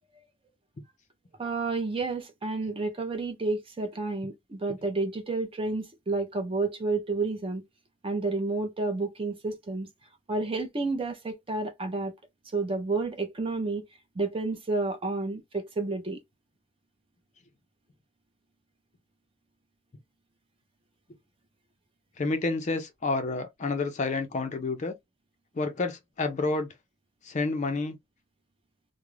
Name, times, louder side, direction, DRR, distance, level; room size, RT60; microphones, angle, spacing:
voice 1, 1.4-7.6 8.0-9.9 10.3-12.1 12.5-13.8 14.2-16.2, right 3 dB, 25° right, 0.5 m, -30 dB
voice 2, 22.2-25.0 25.6-26.7 27.2-28.0, left 3 dB, 35° left, 0.4 m, -29 dB
2.4 x 2.0 x 3.0 m
head